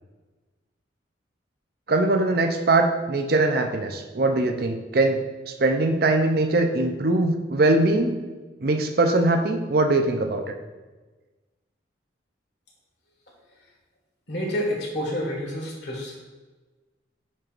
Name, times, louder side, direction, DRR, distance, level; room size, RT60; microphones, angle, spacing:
voice 1, 1.9-5.2 5.5-8.2 8.6-10.4, right 2 dB, 50° right, 5 dB, 0.6 m, -21 dB
voice 2, 14.3-16.2, equal, 60° left, -1 dB, 1.7 m, -28 dB
9.8 x 4.5 x 2.5 m, 1.3 s
head